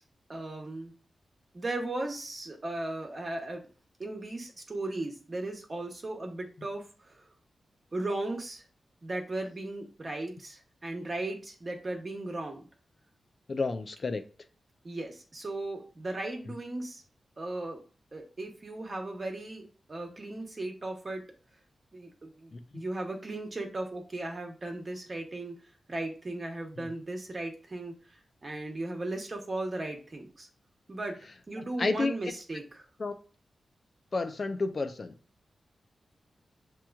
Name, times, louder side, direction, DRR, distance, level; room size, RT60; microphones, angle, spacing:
voice 1, 0.3-0.9 1.5-3.6 4.0-7.3 7.9-8.6 9.0-12.7 14.8-17.0 17.4-17.8 18.1-21.2 21.9-25.6 25.9-30.5 30.9-31.2 31.5-32.9, right 2 dB, 40° right, 3 dB, 1.1 m, -37 dB
voice 2, 13.5-14.2 22.5-22.8 26.8-26.9 31.6-32.1 33.0-33.1 34.1-35.1, left 3 dB, 45° left, 7 dB, 0.5 m, -31 dB
7.4 x 3.0 x 2.3 m, 0.38 s
wide cardioid pair, 100°, 0 cm